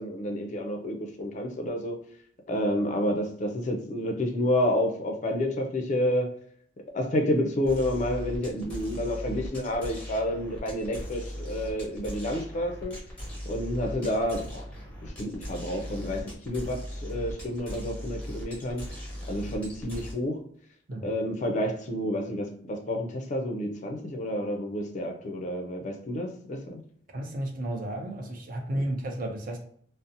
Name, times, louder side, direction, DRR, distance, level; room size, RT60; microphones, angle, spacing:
voice 1, 0.0-2.0 2.5-6.3 6.9-13.0 13.5-14.7 15.0-18.9 19.3-20.4 21.0-26.8 28.7-28.8, left 1 dB, 40° left, 3 dB, 0.4 m, -29 dB
sound 1, 7.6-20.1, equal, 5° left, 0.7 m, -39 dB
voice 2, 27.1-29.6, right 1 dB, 45° right, 3 dB, 0.4 m, -32 dB
2.6 x 2.0 x 2.5 m, 0.62 s
head